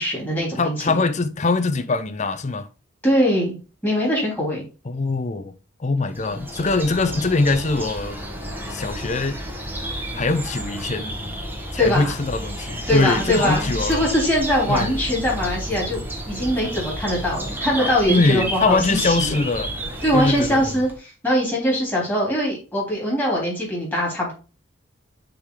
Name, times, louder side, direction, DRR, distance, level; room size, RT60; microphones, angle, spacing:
voice 1, 0.0-1.0 3.0-3.6 3.8-4.6 11.8-12.2 12.9-16.0 16.3-19.4 20.0-24.3, equal, 10° left, 3.4 m, -22 dB
voice 2, 0.6-2.7 4.9-5.5 5.8-8.2 8.7-9.4 10.1-11.2 11.7-14.1 14.7-15.0 18.1-19.7 20.1-20.6, left 3 dB, 35° left, 0.6 m, -22 dB
sound 1, 6.1-21.0, right 1 dB, 10° right, 1.4 m, -31 dB
6.7 x 3.8 x 4.8 m
head